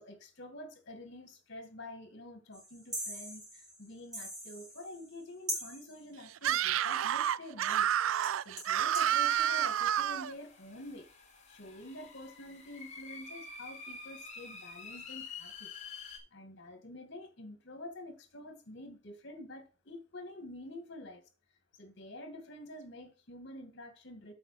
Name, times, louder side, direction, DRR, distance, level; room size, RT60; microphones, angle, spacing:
voice 1, 0.0-7.9 8.4-11.1 11.5-15.7 16.3-21.2 21.5-24.3, left 1 dB, 60° left, 2.1 m, -48 dB
sound 1, 2.5-5.2 5.5-6.0 7.9-8.0 8.2-9.2, equal, 20° right, 4.6 m, -41 dB
Screaming, 6.4-10.3, right 10 dB, 75° right, 0.3 m, -29 dB
sound 2, 9.0-16.2, left 4 dB, 35° left, 3.3 m, -49 dB
7.9 x 5.5 x 5.9 m
head